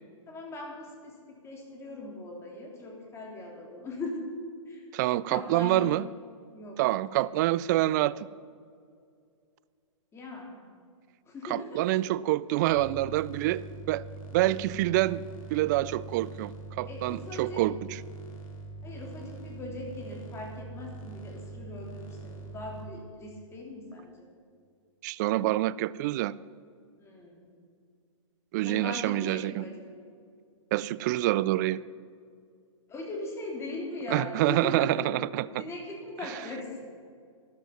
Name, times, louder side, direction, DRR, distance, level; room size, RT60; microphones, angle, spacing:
voice 1, 0.3-4.4 4.7-4.9 5.3-5.9 6.5-7.2 10.1-10.6 11.2-12.0 16.8-17.6 18.8-24.3 27.0-27.5 28.6-29.9 32.9-35.0 35.6-36.8, left 2 dB, 15° left, -1 dB, 3.3 m, -40 dB
voice 2, 4.9-6.1 6.8-8.3 11.5-14.0 14.3-15.2 15.5-18.0 25.0-26.3 28.5-29.6 30.7-31.8 34.1-35.6, right 16 dB, 35° right, 19 dB, 0.3 m, -27 dB
sound 1, 12.7-22.8, right 3 dB, 90° left, 2.9 m, -43 dB
13.0 x 12.5 x 5.8 m, 2.2 s
hypercardioid pair, 135°, 17 cm